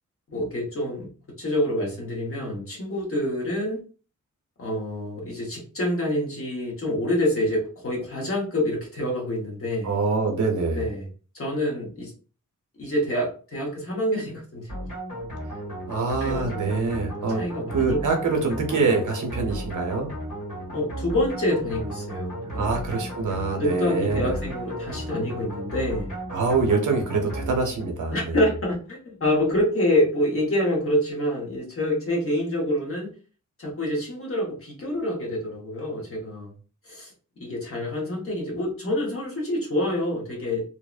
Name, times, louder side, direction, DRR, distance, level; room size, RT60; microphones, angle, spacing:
voice 1, 0.3-1.1 1.4-3.8 4.6-9.9 10.7-11.0 11.3-12.1 12.8-14.7 16.2-16.9 17.3-18.0 20.7-22.7 23.6-26.1 28.1-33.1 33.6-36.5 36.8-37.1 37.4-40.6, left 1 dB, 45° left, -2 dB, 0.9 m, -27 dB
voice 2, 9.8-10.9 15.9-17.4 17.7-20.1 22.6-24.3 26.3-28.4, right 4 dB, 70° right, 2 dB, 0.7 m, -25 dB
sound 1, 14.7-28.0, right 1 dB, 70° left, 1.5 m, -35 dB
2.7 x 2.0 x 2.3 m, 0.38 s
wide cardioid pair, 175°, 32 cm